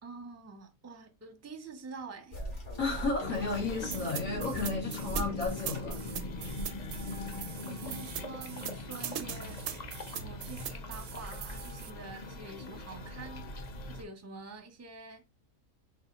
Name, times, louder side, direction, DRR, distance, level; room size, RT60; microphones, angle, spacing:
voice 1, 0.0-2.4 7.7-9.6 10.1-15.2, right 4 dB, 15° right, 0.6 m, -47 dB
sound 1, 2.3-7.5, right 1 dB, 60° left, 2.0 m, -42 dB
voice 2, 2.8-6.0, left 3 dB, 80° left, 2.3 m, -33 dB
sound 2, 3.2-14.0, left 2 dB, 45° left, 0.6 m, -41 dB
sound 3, 3.9-11.9, right 10 dB, 75° right, 0.9 m, -41 dB
4.1 x 2.8 x 4.1 m
omnidirectional pair, 1.4 m